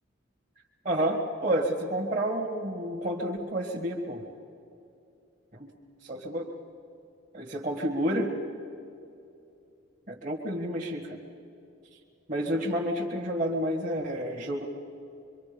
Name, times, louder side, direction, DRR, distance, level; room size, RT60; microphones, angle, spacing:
voice 1, 0.8-4.2 5.5-5.7 6.0-6.5 7.3-8.3 10.1-11.2 12.3-14.6, right 1 dB, 35° right, -3 dB, 1.9 m, -30 dB
25.5 x 24.5 x 5.3 m, 2.6 s
head